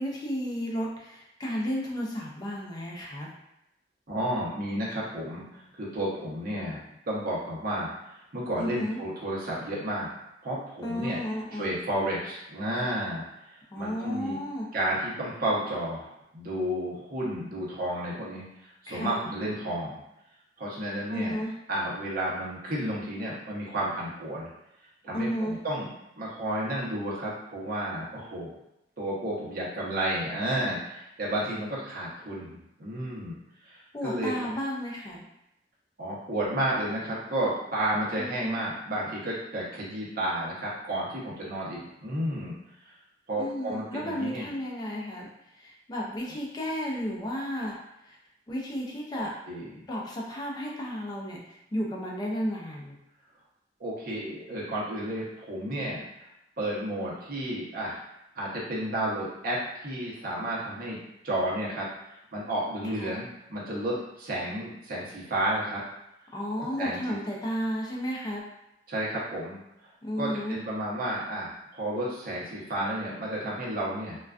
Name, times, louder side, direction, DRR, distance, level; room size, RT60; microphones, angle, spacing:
voice 1, 0.0-3.3 8.6-9.0 10.8-11.7 13.7-14.7 18.9-19.2 21.1-21.5 25.1-25.6 33.9-35.3 38.2-38.6 43.4-45.3 45.6-47.8 48.0-48.2 48.5-49.3 49.9-53.0 63.0-63.1 66.3-68.4 70.0-70.6, equal, 25° left, -2 dB, 0.4 m, -33 dB
voice 2, 4.1-7.9 8.3-10.1 10.4-11.2 11.5-13.2 13.7-14.4 14.7-18.4 18.8-20.0 20.6-24.5 25.0-25.9 26.2-28.5 29.0-33.3 33.6-34.5 36.0-42.5 43.3-44.5 49.1-49.9 53.8-56.1 56.6-58.0 58.3-61.0 61.2-61.9 62.3-65.8 66.8-67.2 68.9-69.6 70.2-74.2, right 1 dB, 55° right, -6 dB, 0.7 m, -32 dB
2.3 x 2.2 x 2.3 m, 0.86 s
head